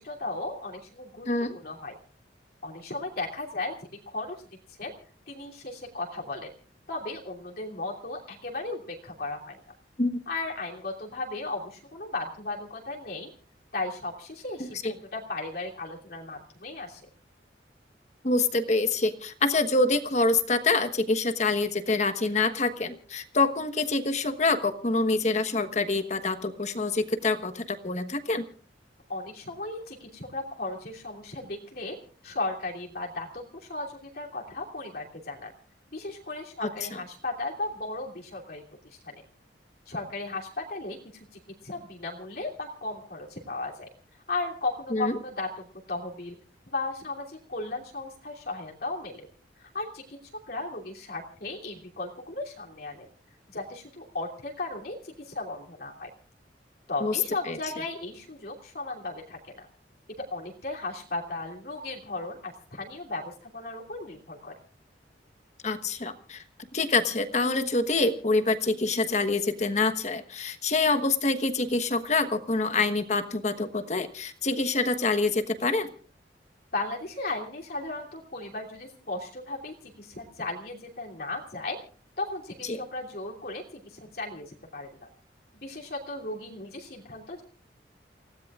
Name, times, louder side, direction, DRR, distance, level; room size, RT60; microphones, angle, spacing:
voice 1, 0.0-1.3 1.5-1.9 2.6-3.7 4.1-4.4 4.8-4.9 5.3-6.5 6.9-9.6 10.3-13.3 13.7-17.0 29.1-32.0 32.2-35.5 35.9-38.6 39.0-39.2 39.9-41.0 41.6-43.9 44.3-46.3 46.7-49.3 49.6-50.2 50.5-53.1 53.5-56.1 56.9-59.7 60.2-64.5 76.7-81.8 82.2-85.1 85.6-87.4, left 2 dB, 60° left, -1 dB, 3.0 m, -36 dB
voice 2, 1.2-1.6 10.0-10.2 14.6-15.0 18.2-28.4 36.6-37.0 44.9-45.2 57.0-57.6 65.6-66.4 66.7-75.9 82.6-82.8, left 3 dB, 40° left, 9 dB, 1.2 m, -26 dB
29.5 x 17.0 x 2.4 m, 0.40 s
head